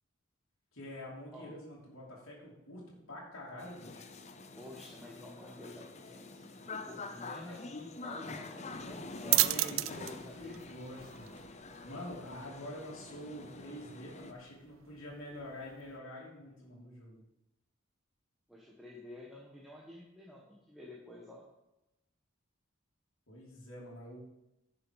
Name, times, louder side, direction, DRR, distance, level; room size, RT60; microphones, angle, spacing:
voice 1, 0.7-4.1 7.4-7.6 9.3-10.1 10.4-11.4 11.8-17.2 23.3-24.2, left 1 dB, 85° left, -4 dB, 3.0 m, -46 dB
sound 1, 3.6-14.3, left 3 dB, 35° left, 0.6 m, -46 dB
voice 2, 4.6-10.6 18.5-21.4, left 1 dB, ahead, -5 dB, 1.3 m, -50 dB
sound 2, 8.7-16.0, right 17 dB, 75° right, 0.4 m, -37 dB
11.0 x 6.8 x 4.8 m, 0.92 s
head